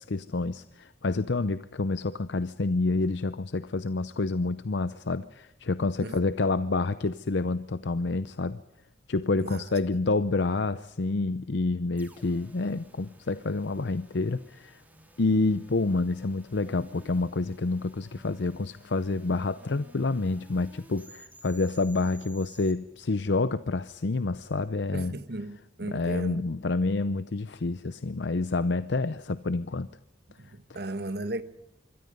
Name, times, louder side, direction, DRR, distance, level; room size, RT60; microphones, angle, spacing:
voice 1, 0.0-8.6 9.1-14.8 15.2-25.1 25.9-29.9 30.7-30.8, left 3 dB, 70° left, 0.7 m, -28 dB
voice 2, 9.3-9.7 24.9-26.5 30.4-31.4, right 1 dB, 60° right, 1.4 m, -36 dB
sound 1, 12.0-22.7, right 2 dB, 10° right, 3.2 m, -55 dB
26.0 x 22.5 x 5.4 m
head